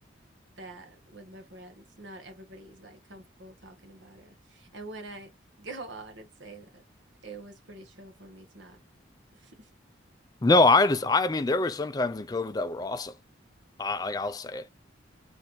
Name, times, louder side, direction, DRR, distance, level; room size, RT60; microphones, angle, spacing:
voice 1, 0.6-5.3 5.6-6.8 7.2-8.8 9.3-9.7, right 2 dB, 70° right, 1.2 m, -46 dB
voice 2, 10.4-13.1 13.8-14.7, left 3 dB, 20° left, 0.3 m, -24 dB
4.2 x 3.9 x 3.1 m
head